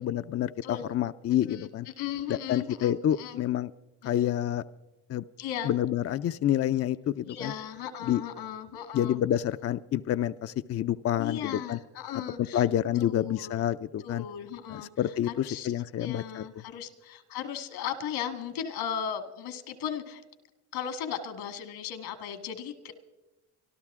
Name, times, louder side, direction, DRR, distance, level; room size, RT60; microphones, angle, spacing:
voice 1, 0.0-1.9 2.3-3.7 4.0-4.6 5.1-5.2 5.7-7.5 8.0-8.2 8.9-11.8 12.4-14.3 14.7-16.4, left 11 dB, 40° left, 11 dB, 0.4 m, -28 dB
voice 2, 1.4-3.4 4.0-4.4 5.4-5.7 7.2-9.2 11.2-12.6 13.0-13.6 14.0-15.7 16.0-20.2 20.7-22.9, left 8 dB, 80° left, 10 dB, 1.9 m, -37 dB
24.5 x 13.0 x 3.6 m, 1.0 s
cardioid pair, 90°, 39 cm